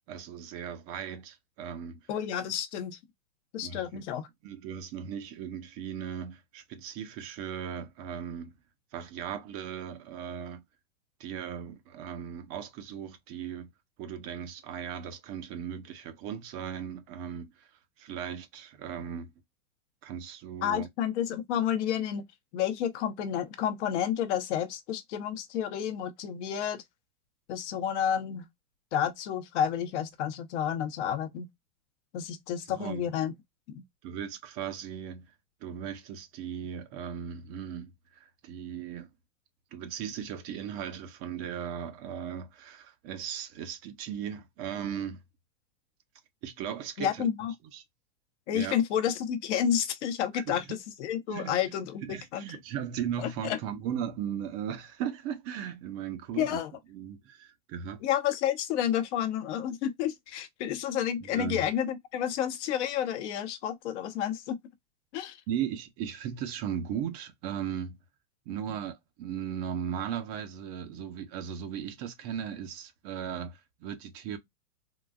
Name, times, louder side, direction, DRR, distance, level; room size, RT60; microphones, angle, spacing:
voice 1, 0.0-2.0 3.6-4.0 4.4-8.6 8.9-10.6 11.2-13.7 14.0-17.7 18.0-19.3 20.0-20.9 32.7-33.1 34.0-35.3 35.6-39.1 39.7-45.2 46.4-47.3 47.7-47.8 48.5-48.8 50.3-50.6 51.3-51.5 52.0-56.6 56.9-58.0 61.2-61.6 65.5-68.0 68.5-74.4, right 8 dB, 30° right, 0.6 m, -37 dB
voice 2, 2.1-3.0 3.5-4.3 20.6-22.2 22.5-26.8 27.5-28.5 28.9-31.5 32.1-33.3 33.7-33.8 47.0-47.5 48.5-52.5 53.2-53.6 56.4-56.7 58.0-64.6 65.1-65.4, left 9 dB, 50° left, 0.8 m, -30 dB
3.8 x 2.4 x 2.3 m
hypercardioid pair, 115°, 45 cm